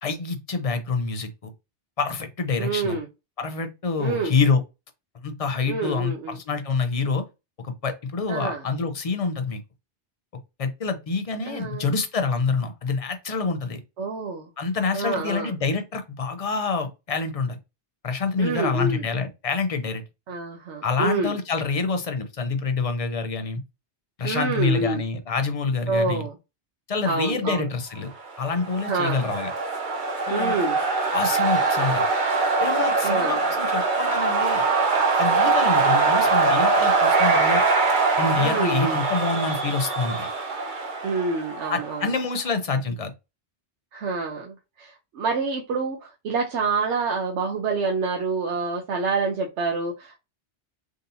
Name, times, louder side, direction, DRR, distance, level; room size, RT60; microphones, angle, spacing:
voice 1, 0.0-1.5 2.0-3.0 3.4-4.6 5.2-7.2 7.6-9.6 10.6-13.8 14.6-17.6 18.0-20.0 20.8-23.6 24.2-26.2 26.9-28.1 28.4-29.5 30.3-30.6 31.1-32.1 32.6-34.6 35.2-37.6 38.2-40.3 41.7-43.1, left 4 dB, 40° left, 0.6 m, -26 dB
voice 2, 2.6-3.1 4.0-4.3 5.7-6.4 8.3-8.6 11.5-11.9 14.0-14.5 14.9-15.5 18.4-19.1 20.3-21.4 24.2-25.0 25.9-26.4 27.0-27.7 28.9-29.3 30.3-30.8 33.0-33.4 38.4-39.0 41.0-42.1 43.9-50.2, right 4 dB, 80° right, 1.0 m, -27 dB
sound 1, 28.3-42.1, right 4 dB, 50° right, 0.8 m, -22 dB
3.6 x 2.7 x 2.6 m
omnidirectional pair, 1.2 m